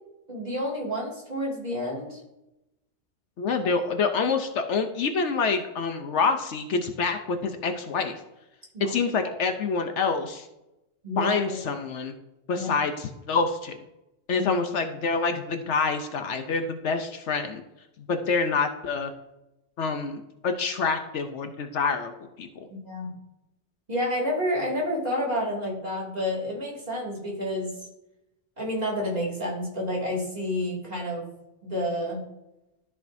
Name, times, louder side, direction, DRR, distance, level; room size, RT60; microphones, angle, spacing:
voice 1, 0.3-2.2 8.7-9.0 9.2-9.3 11.0-11.6 12.5-12.7 14.3-14.5 22.7-23.1 23.9-27.7 28.6-31.3 31.6-32.2, left 1 dB, 30° right, -5 dB, 2.5 m, -29 dB
voice 2, 3.4-8.2 8.8-10.5 11.2-12.1 12.5-13.8 14.3-17.6 18.1-19.1 19.8-22.1 22.4-22.7, left 4 dB, 70° left, 7 dB, 1.0 m, -27 dB
13.0 x 4.9 x 2.6 m, 0.91 s
omnidirectional pair, 1.3 m